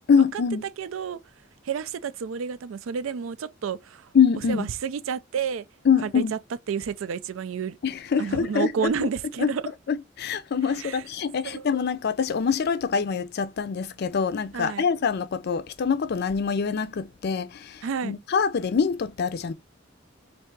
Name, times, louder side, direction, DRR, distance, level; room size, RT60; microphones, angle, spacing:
voice 1, 0.1-0.6 4.1-4.7 5.9-6.3 7.8-9.1 9.4-9.5 9.9-19.5, left 6 dB, 55° left, 0.4 m, -24 dB
voice 2, 0.8-1.2 1.6-4.1 4.5-5.7 6.0-6.4 6.7-7.8 8.2-9.6 10.8-11.0 11.4-11.7 14.5-14.9 17.8-18.2, right 7 dB, 85° right, 0.4 m, -30 dB
3.4 x 2.7 x 4.5 m
head